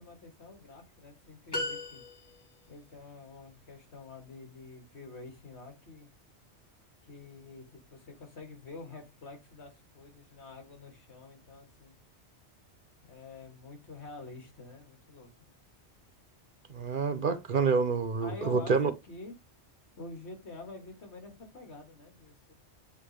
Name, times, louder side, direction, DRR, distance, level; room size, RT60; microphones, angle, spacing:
voice 1, 0.0-2.0 2.7-6.1 7.0-12.0 13.0-15.3 18.2-19.3 20.0-22.5, left 3 dB, 70° left, 2.3 m, -48 dB
sound 1, 1.5-2.6, left 2 dB, 20° left, 2.9 m, -36 dB
voice 2, 16.7-18.9, right 5 dB, 55° right, 0.8 m, -27 dB
8.2 x 3.9 x 3.3 m
omnidirectional pair, 1.2 m